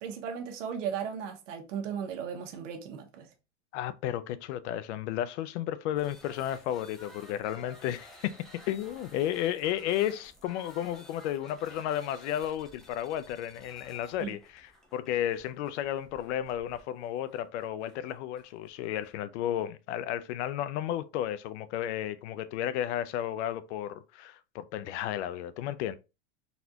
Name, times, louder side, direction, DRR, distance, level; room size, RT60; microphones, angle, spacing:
voice 1, 0.0-3.3 14.2-14.3, right 7 dB, 85° right, 1.0 m, -36 dB
voice 2, 3.7-8.3 8.6-26.0, left 11 dB, 70° left, 0.5 m, -33 dB
sound 1, 6.0-19.2, equal, ahead, 0.3 m, -54 dB
4.1 x 2.4 x 2.8 m
supercardioid pair, 145°, 36 cm